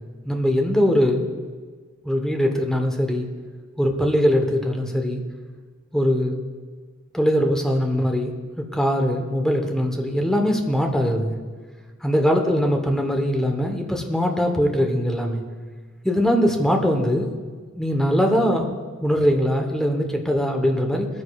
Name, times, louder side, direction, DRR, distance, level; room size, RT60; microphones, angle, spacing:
voice 1, 0.3-1.3 2.0-3.3 3.8-5.2 5.9-6.4 7.1-11.4 12.0-15.4 16.0-17.3 17.8-21.1, equal, 5° left, 2 dB, 0.9 m, -21 dB
23.5 x 9.7 x 2.3 m, 1.5 s
head